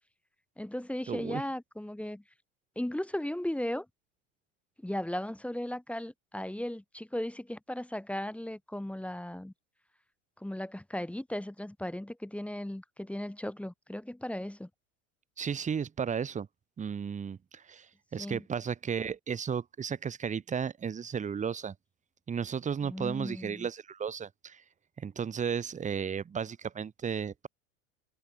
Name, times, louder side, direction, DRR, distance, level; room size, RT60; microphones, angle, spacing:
voice 1, 0.6-2.2 2.8-3.9 4.8-9.5 10.4-14.7 18.2-18.4 22.8-23.7, left 1 dB, 5° left, 1.3 m, -36 dB
voice 2, 1.1-1.4 15.4-16.5 16.8-17.9 18.1-21.7 22.3-24.6 25.0-27.5, right 7 dB, 20° right, 0.9 m, -34 dB
hypercardioid pair, 90°, 37 cm